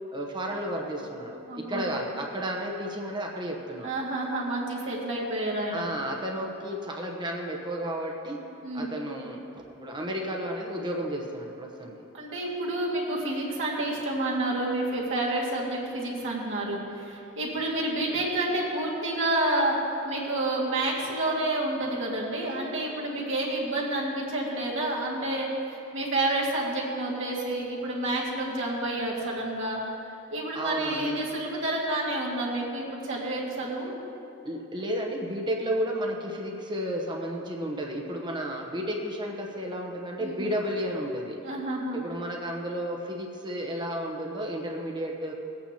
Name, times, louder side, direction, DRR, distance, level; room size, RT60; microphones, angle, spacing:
voice 1, 0.1-4.0 5.7-8.4 8.7-12.0 30.5-31.2 34.4-41.4 41.9-45.3, equal, 20° right, 0 dB, 0.9 m, -32 dB
voice 2, 1.5-1.9 3.8-5.8 8.6-8.9 12.1-29.8 30.3-33.9 40.2-40.5 41.4-42.0, right 1 dB, 60° right, -4 dB, 2.0 m, -29 dB
18.0 x 8.9 x 2.9 m, 2.9 s
head